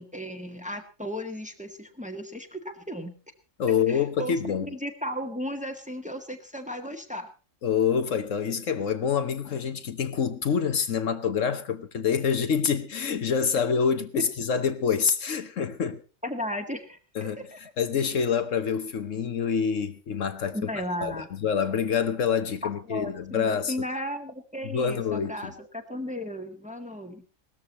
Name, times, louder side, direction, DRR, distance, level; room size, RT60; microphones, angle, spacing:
voice 1, 0.0-3.2 3.9-7.3 16.2-17.6 20.5-21.3 22.6-27.3, equal, 5° right, 1.6 m, -35 dB
voice 2, 3.6-4.7 7.6-16.0 17.2-17.4 17.8-20.6 21.0-23.7 24.7-25.5, left 7 dB, 65° left, 1.3 m, -26 dB
18.0 x 13.5 x 4.2 m
omnidirectional pair, 1.4 m